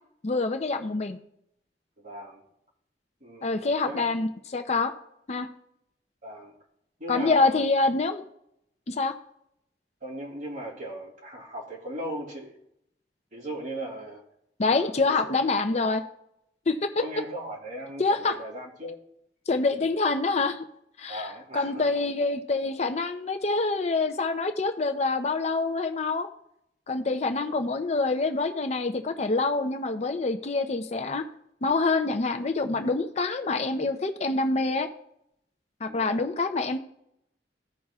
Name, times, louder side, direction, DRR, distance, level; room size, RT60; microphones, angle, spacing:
voice 1, 0.2-1.2 3.4-4.9 5.3-5.5 7.1-8.2 8.9-9.1 14.6-16.0 16.7-16.8 18.0-18.3 19.5-20.6 21.0-21.2 21.5-26.3 26.9-31.2 31.6-34.9 35.8-36.8, left 3 dB, 40° left, 7 dB, 0.6 m, -26 dB
voice 2, 2.0-2.4 3.2-4.1 6.2-6.5 7.0-7.7 10.0-12.6 13.3-14.2 14.8-15.4 17.0-19.1 21.1-22.0 35.9-36.3, right 1 dB, 50° right, -3 dB, 2.7 m, -38 dB
15.5 x 5.3 x 2.4 m, 0.77 s
head